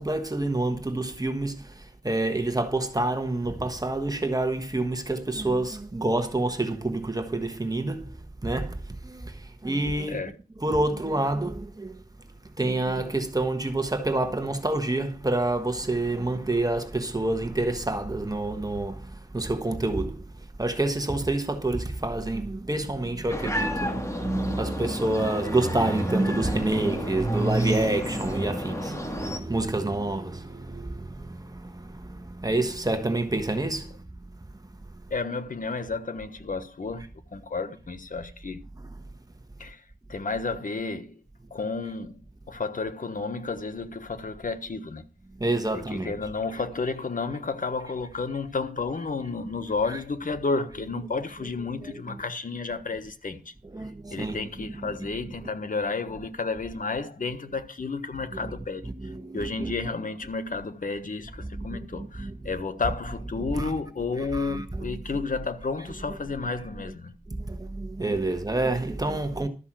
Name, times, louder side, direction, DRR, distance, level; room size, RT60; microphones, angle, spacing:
voice 1, 0.0-1.6 2.0-8.1 8.4-8.8 9.0-9.3 9.6-10.2 10.6-11.9 12.6-19.1 19.3-20.2 20.6-33.9 45.4-46.1 49.9-50.0 51.8-52.2 53.6-55.0 58.3-58.5 58.8-59.7 61.4-62.4 63.5-63.7 64.2-65.2 67.3-69.5, right 2 dB, 25° right, 1.4 m, -28 dB
sound 1, 23.3-29.4, left 1 dB, 20° left, 1.9 m, -32 dB
voice 2, 35.1-37.1 37.3-38.6 39.6-39.8 40.1-41.2 41.5-42.2 42.5-45.0 45.7-53.5 54.1-58.9 59.3-67.2, left 4 dB, 70° left, 1.2 m, -31 dB
12.5 x 5.5 x 7.5 m
wide cardioid pair, 80°, 15 cm